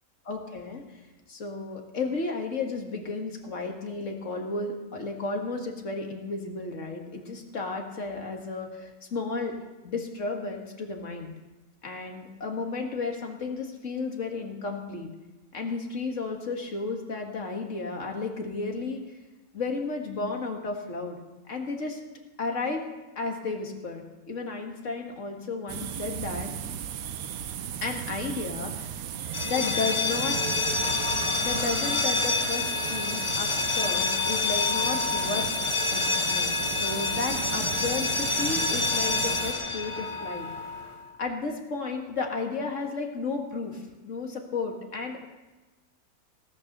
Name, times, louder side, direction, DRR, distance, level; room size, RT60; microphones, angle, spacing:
voice 1, 0.3-0.8 1.3-9.6 9.8-11.3 11.8-15.1 15.5-19.0 19.5-21.2 21.5-22.0 22.4-22.8 23.2-26.5 27.8-28.9 29.5-30.4 31.4-35.5 35.9-40.5 41.2-45.3, left 3 dB, 55° left, 2 dB, 2.1 m, -33 dB
sound 1, 25.7-39.5, right 9 dB, 75° right, 1.2 m, -36 dB
sound 2, 29.3-41.0, left 3 dB, 25° left, 0.8 m, -28 dB
17.5 x 9.0 x 6.7 m, 1.1 s
omnidirectional pair, 1.5 m